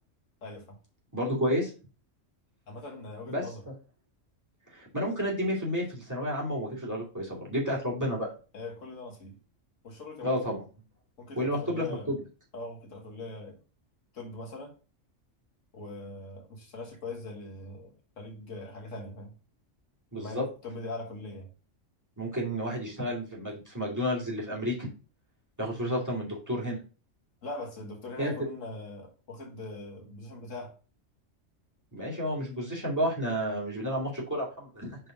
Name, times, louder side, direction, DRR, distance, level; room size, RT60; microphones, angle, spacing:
voice 1, 0.4-0.8 2.7-3.6 8.5-9.4 9.8-10.5 11.2-12.2 12.5-13.6 14.1-14.8 15.7-19.3 20.2-21.5 27.4-30.8, left 2 dB, 75° left, 1.8 m, -41 dB
voice 2, 1.1-1.7 3.3-3.4 4.7-8.3 10.2-10.6 11.4-12.2 20.1-20.4 22.2-24.9 25.6-26.8 28.2-28.3 31.9-35.0, equal, 15° right, 2.4 m, -31 dB
5.3 x 4.2 x 4.8 m
omnidirectional pair, 1.3 m